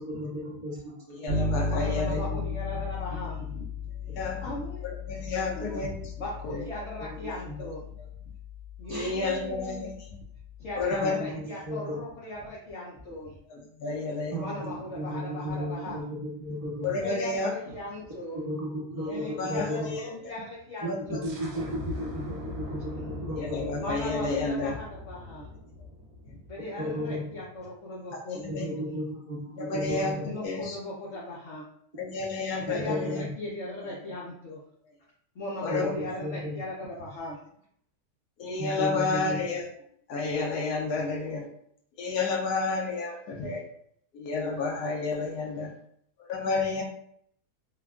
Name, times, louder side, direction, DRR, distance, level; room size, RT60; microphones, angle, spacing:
voice 1, 0.0-0.9 1.4-1.7 2.0-2.4 7.2-7.5 8.9-9.1 10.9-12.0 14.3-16.9 18.3-19.9 21.1-23.7 26.8-27.2 28.5-30.3 32.7-33.3 35.7-36.5 38.6-39.4, equal, 35° right, -7 dB, 1.3 m, -34 dB
voice 2, 1.1-2.2 4.2-4.4 4.8-5.9 6.4-6.6 8.9-10.2 10.8-11.2 13.5-14.4 16.8-17.5 19.4-20.2 20.9-21.0 23.4-24.7 28.3-28.7 29.6-30.1 30.4-30.8 32.0-33.2 35.6-35.9 38.4-39.6 40.1-41.4 42.0-43.6 44.1-45.7 46.2-46.8, left 3 dB, 80° left, 1 dB, 1.1 m, -30 dB
Bass guitar, 1.3-10.9, left 3 dB, 85° right, 0.4 m, -35 dB
voice 3, 1.7-3.6 4.1-4.8 5.1-7.8 8.8-9.9 10.6-13.3 14.4-16.0 17.0-18.4 19.0-21.3 21.9-23.2 23.8-25.5 26.3-28.9 30.2-31.6 32.7-34.6 35.4-37.4, left 1 dB, 65° left, -4 dB, 0.7 m, -39 dB
sound 1, 21.2-26.7, left 2 dB, 65° right, 1.0 m, -41 dB
3.4 x 2.3 x 2.3 m, 0.67 s
omnidirectional pair, 1.7 m